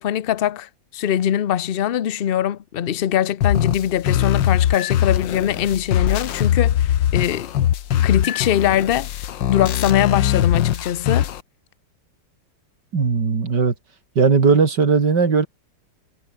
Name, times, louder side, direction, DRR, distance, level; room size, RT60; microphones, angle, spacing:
voice 1, 0.0-7.5 8.0-9.1 9.5-11.3, left 10 dB, 60° left, 0.6 m, -22 dB
sound 1, 3.4-11.4, left 11 dB, 85° left, 1.7 m, -21 dB
voice 2, 12.9-13.7 14.1-15.5, right 5 dB, 70° right, 3.4 m, -17 dB
omnidirectional pair, 1.9 m